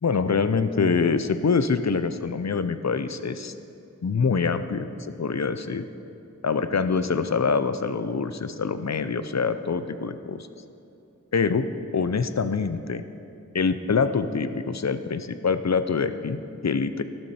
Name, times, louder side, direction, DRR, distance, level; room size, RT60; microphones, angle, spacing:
voice 1, 0.0-3.5 4.0-5.9 6.4-10.5 11.3-11.7 11.9-13.0 13.5-17.0, left 5 dB, 60° left, 11 dB, 0.6 m, -25 dB
12.5 x 12.5 x 4.3 m, 2.7 s
wide cardioid pair, 45°, 31 cm